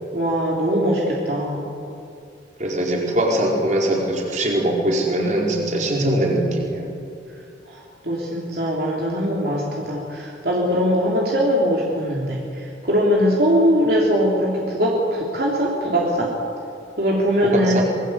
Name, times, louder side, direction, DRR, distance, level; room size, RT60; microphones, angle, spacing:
voice 1, 0.1-1.7 7.7-16.3 17.0-17.8, equal, 55° right, -3 dB, 3.6 m, -21 dB
voice 2, 2.6-6.9 17.4-17.8, right 1 dB, 40° right, -1 dB, 4.7 m, -21 dB
26.5 x 21.5 x 8.2 m, 2.5 s
head